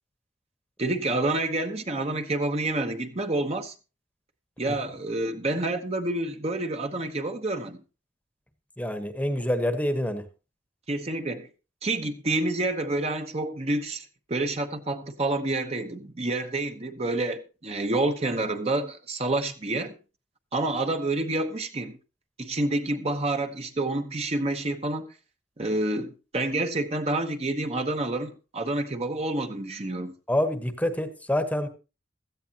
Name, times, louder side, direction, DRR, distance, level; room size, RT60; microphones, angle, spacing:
voice 1, 0.8-3.7 4.6-7.8 10.9-11.5 11.8-20.0 20.5-22.0 22.4-25.1 25.6-30.1, right 2 dB, 35° right, 1.0 m, -28 dB
voice 2, 8.8-10.2 30.3-31.7, left 1 dB, 10° left, 1.1 m, -26 dB
16.5 x 13.5 x 2.9 m
head